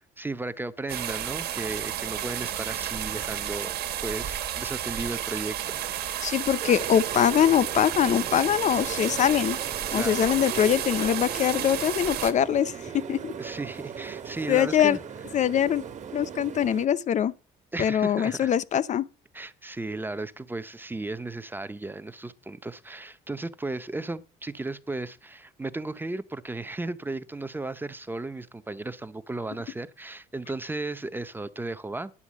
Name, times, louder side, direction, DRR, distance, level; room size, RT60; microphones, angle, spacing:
voice 1, 0.2-5.8 9.9-10.3 13.4-15.0 17.7-18.5 19.3-32.1, right 2 dB, 10° right, 0.6 m, -35 dB
sound 1, 0.9-12.3, right 11 dB, 70° right, 1.5 m, -32 dB
voice 2, 6.2-9.6 9.9-13.3 14.5-15.0 15.3-15.8 16.1-17.3 17.8-19.1, left 9 dB, 45° left, 0.5 m, -23 dB
sound 2, 6.6-16.9, right 7 dB, 45° right, 1.5 m, -38 dB
9.8 x 8.1 x 7.3 m
cardioid pair, 110°, 17 cm